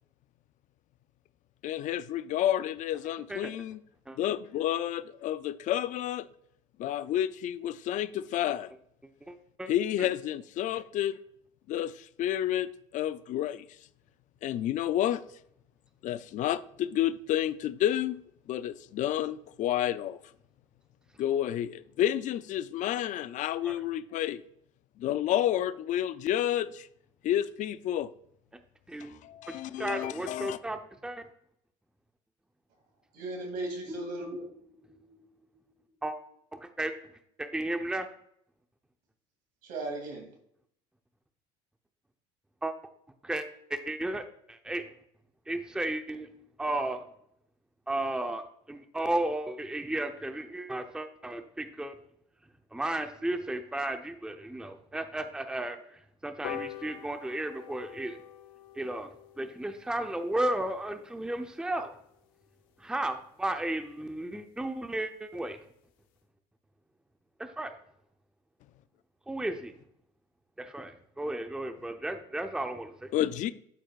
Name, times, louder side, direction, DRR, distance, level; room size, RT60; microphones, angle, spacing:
voice 1, 1.6-3.8 4.2-6.3 6.8-8.7 9.7-11.2 11.7-13.7 14.4-15.2 16.0-18.2 18.5-20.2 21.2-24.4 25.0-26.9 27.2-28.1 29.0-30.6 73.1-73.5, left 11 dB, 50° left, 0.4 m, -30 dB
voice 2, 9.2-9.7 10.0-10.1 23.7-23.8 28.9-31.2 36.0-36.2 36.5-36.9 37.4-38.1 42.6-42.7 43.2-44.8 45.5-46.3 46.6-47.1 47.9-51.9 52.7-58.2 58.8-59.1 59.4-61.9 62.8-65.6 67.4-67.7 69.3-69.7 70.6-73.1, right 1 dB, 5° right, 0.7 m, -34 dB
voice 3, 33.1-34.5 39.6-40.3, right 2 dB, 65° right, 2.6 m, -36 dB
sound 1, 33.9-37.3, equal, 25° right, 1.6 m, -50 dB
sound 2, 56.4-63.2 63.6-63.7 64.0-64.1 64.4-64.5 64.8-64.9 65.2-65.5 65.9-66.0, left 10 dB, 80° left, 0.8 m, -46 dB
12.5 x 4.4 x 2.4 m
supercardioid pair, 85°, 16 cm